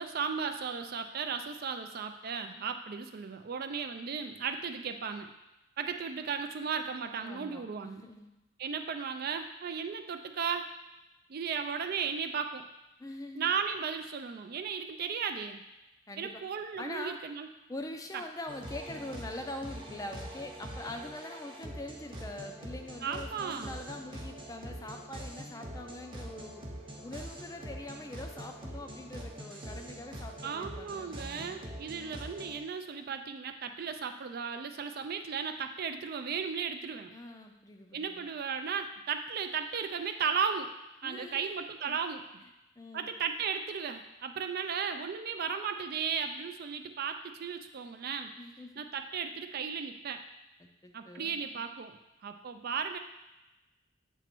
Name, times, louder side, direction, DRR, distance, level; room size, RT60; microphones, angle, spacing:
voice 1, 0.0-5.3 5.8-8.0 8.6-10.7 11.3-12.7 13.4-15.6 16.2-17.5 23.0-23.7 30.4-37.1 37.9-40.7 41.0-42.4 42.9-48.3 48.8-50.2 50.9-53.0, right 6 dB, 50° right, 7 dB, 0.4 m, -35 dB
voice 2, 7.2-8.3 13.0-13.5 16.1-16.4 16.8-17.2 17.7-26.6 27.0-31.6 37.1-38.3 41.0-41.5 41.9-42.0 42.8-43.1 48.4-48.8 50.6-51.6, left 1 dB, 15° left, 4 dB, 0.4 m, -44 dB
sound 1, 18.5-32.6, right 1 dB, 25° right, 0.9 m, -44 dB
7.8 x 3.0 x 4.4 m, 0.99 s
head